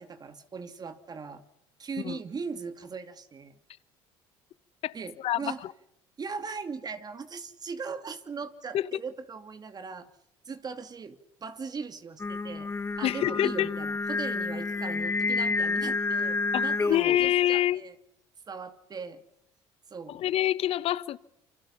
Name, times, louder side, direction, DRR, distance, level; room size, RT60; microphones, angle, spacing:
voice 1, 0.0-1.4 1.8-3.6 4.9-5.6 6.2-10.1 10.5-12.7 13.0-17.9 18.5-19.2 19.9-20.2, right 5 dB, 35° right, 2.5 m, -39 dB
voice 2, 4.8-5.5 8.7-8.9 13.0-13.7 16.5-17.8 20.1-21.2, left 12 dB, 60° left, 1.1 m, -26 dB
Singing, 12.2-17.3, left 3 dB, 20° left, 1.6 m, -29 dB
28.0 x 25.5 x 5.7 m
supercardioid pair, 80°, 11 cm